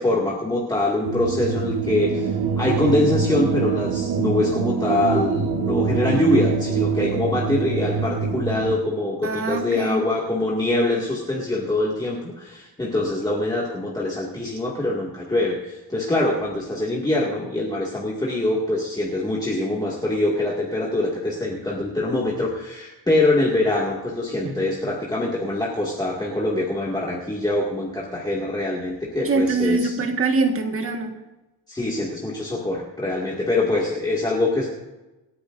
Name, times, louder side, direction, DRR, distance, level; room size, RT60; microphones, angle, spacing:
voice 1, 0.0-29.9 31.7-34.7, left 2 dB, 10° left, -5 dB, 2.1 m, -24 dB
sound 1, 1.0-8.8, right 6 dB, 65° right, 1.2 m, -24 dB
voice 2, 9.2-10.0 24.4-24.5 29.2-31.1, right 3 dB, 35° right, 4 dB, 1.7 m, -23 dB
27.0 x 10.0 x 2.6 m, 1.1 s
cardioid pair, 155°, 39 cm